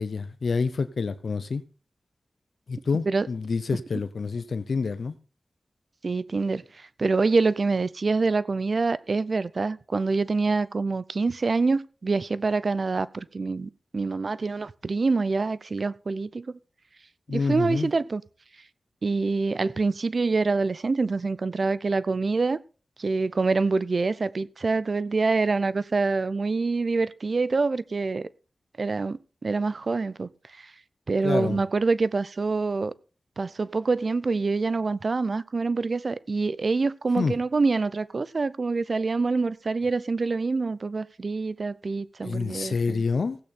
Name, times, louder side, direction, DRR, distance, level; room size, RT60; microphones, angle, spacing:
voice 1, 0.0-1.6 2.7-5.1 17.3-17.9 31.2-31.6 37.2-37.3 42.2-43.4, left 4 dB, 80° left, 0.7 m, -27 dB
voice 2, 6.0-16.6 17.3-18.2 19.0-22.6 23.0-28.3 28.8-30.3 30.6-30.7 31.1-32.9 33.4-43.0, right 3 dB, 60° right, 0.6 m, -26 dB
16.0 x 8.6 x 4.3 m
cardioid pair, 45°, 0 cm